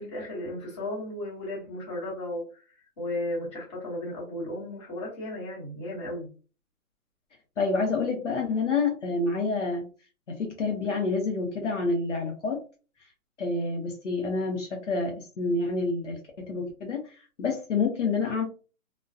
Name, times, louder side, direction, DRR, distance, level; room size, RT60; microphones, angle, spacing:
voice 1, 0.0-2.6 3.0-6.3, left 1 dB, 20° left, -6 dB, 1.0 m, -35 dB
voice 2, 7.6-9.8 10.3-12.6 13.4-18.4, left 3 dB, 55° left, 1 dB, 0.7 m, -28 dB
2.3 x 2.2 x 2.5 m, 0.35 s
hypercardioid pair, 170°, 43 cm